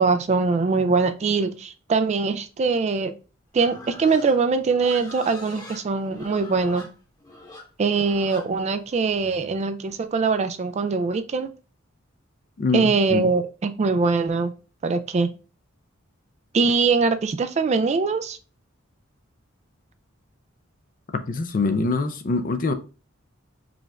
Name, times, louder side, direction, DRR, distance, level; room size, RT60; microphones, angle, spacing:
voice 1, 0.0-3.1 3.5-6.9 7.8-11.5 12.7-14.5 14.8-15.3 16.5-18.4, right 4 dB, 35° right, 0.3 m, -22 dB
Livestock farm animals working animals, 3.5-9.6, left 2 dB, 20° left, 1.0 m, -44 dB
voice 2, 12.6-13.3 21.3-22.7, left 3 dB, 45° left, 0.5 m, -24 dB
5.0 x 2.4 x 3.3 m
head